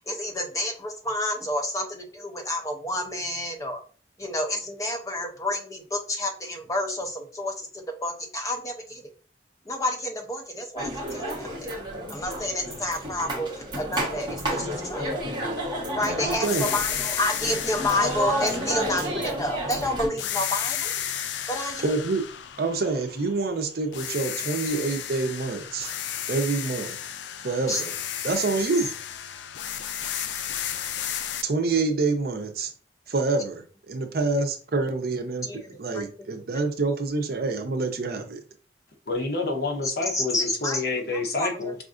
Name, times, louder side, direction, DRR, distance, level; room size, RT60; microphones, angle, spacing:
voice 1, 0.1-3.8 4.2-9.0 9.7-11.7 12.1-13.5 13.8-15.1 15.9-20.9 21.5-21.9 27.7-27.8 35.4-36.1 40.1-40.8 41.4-41.7, left 1 dB, 20° left, 3 dB, 0.6 m, -29 dB
sound 1, 10.8-20.1, right 1 dB, 25° right, 1.1 m, -31 dB
voice 2, 16.2-16.7 21.8-22.2 22.6-25.9 26.3-27.0 27.4-27.9 28.2-28.9 31.4-32.7 33.1-35.5 35.8-38.4, right 3 dB, 55° right, 6 dB, 0.6 m, -27 dB
sound 2, 16.4-19.7 20.2-23.5 23.9-31.4, left 9 dB, 85° left, 0.3 m, -33 dB
voice 3, 39.1-41.7, left 3 dB, 60° left, 3 dB, 0.8 m, -28 dB
4.9 x 2.5 x 2.4 m, 0.39 s
head